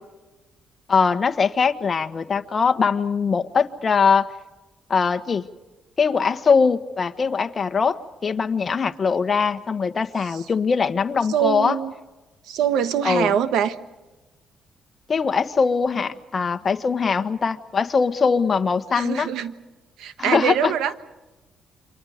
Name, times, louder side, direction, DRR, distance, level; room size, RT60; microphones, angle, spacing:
voice 1, 0.9-4.3 4.9-5.5 6.0-11.8 13.0-13.3 15.1-19.3 20.2-20.7, left 5 dB, 40° left, 8 dB, 1.4 m, -21 dB
voice 2, 11.3-11.9 12.5-13.7 18.9-19.5 20.0-20.9, right 9 dB, 85° right, 11 dB, 1.3 m, -23 dB
29.0 x 25.5 x 5.2 m, 1.1 s
cardioid pair, 90°, 0 cm